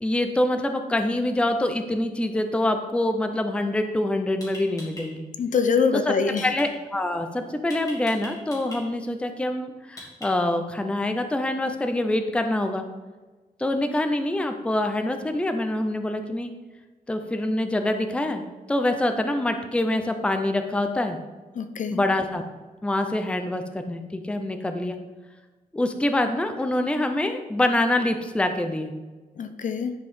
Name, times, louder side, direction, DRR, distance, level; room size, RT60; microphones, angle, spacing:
voice 1, 0.0-5.3 6.1-6.2 6.4-12.8 13.6-16.5 17.1-21.2 21.9-22.4 22.8-25.0 25.7-28.9, left 1 dB, 5° left, 6 dB, 0.5 m, -25 dB
sound 1, 3.9-4.0 4.4-5.0 6.4-6.7 7.7-8.8 10.0-10.6, left 1 dB, 25° left, 2.9 m, -40 dB
voice 2, 5.4-6.5 21.6-22.0 29.4-29.9, left 5 dB, 55° left, 9 dB, 0.7 m, -24 dB
10.5 x 5.3 x 5.4 m, 1.3 s
wide cardioid pair, 180°, 15 cm